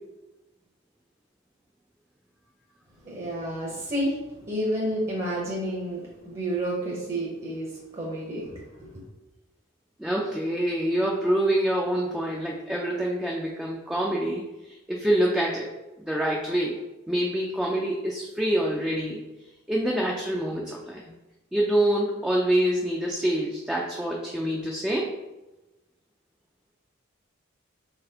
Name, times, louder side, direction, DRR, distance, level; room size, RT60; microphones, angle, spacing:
voice 1, 3.0-9.0, right 1 dB, 35° right, -3 dB, 0.7 m, -30 dB
voice 2, 10.0-15.7 16.0-16.8 17.1-19.2 19.7-21.1 21.5-25.1, right 1 dB, 5° right, -3 dB, 0.3 m, -26 dB
3.9 x 3.3 x 2.8 m, 1.1 s
head